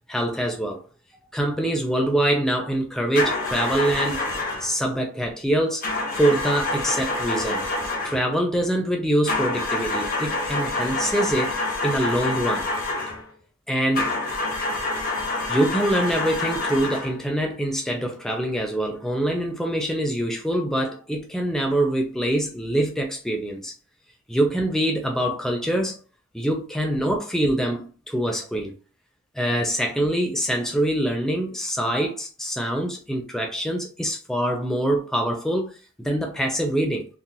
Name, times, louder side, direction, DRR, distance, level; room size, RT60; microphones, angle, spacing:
voice 1, 0.1-0.8 1.3-4.3 4.6-5.8 6.1-7.6 8.0-11.5 11.8-12.7 13.7-14.1 15.5-23.7 24.3-26.0 26.3-28.7 29.3-37.1, right 1 dB, ahead, 0.5 m, -24 dB
sound 1, 3.1-4.7 5.8-8.3 9.3-13.2 13.9-17.2, left 2 dB, 40° left, 0.9 m, -27 dB
3.8 x 2.5 x 2.7 m
head